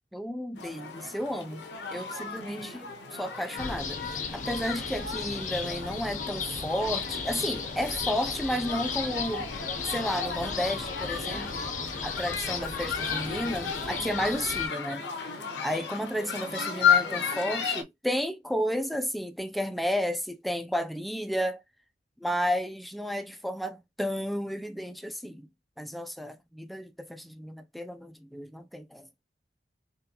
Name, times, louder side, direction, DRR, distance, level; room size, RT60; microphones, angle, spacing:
voice 1, 0.1-9.5 9.8-11.6 12.0-15.1 15.6-21.6 22.2-25.5 25.8-29.1, equal, ahead, 0.3 m, -32 dB
sound 1, 0.6-17.8, left 6 dB, 80° left, 0.8 m, -33 dB
sound 2, 3.6-14.7, left 5 dB, 45° left, 0.6 m, -35 dB
3.8 x 3.2 x 2.9 m
head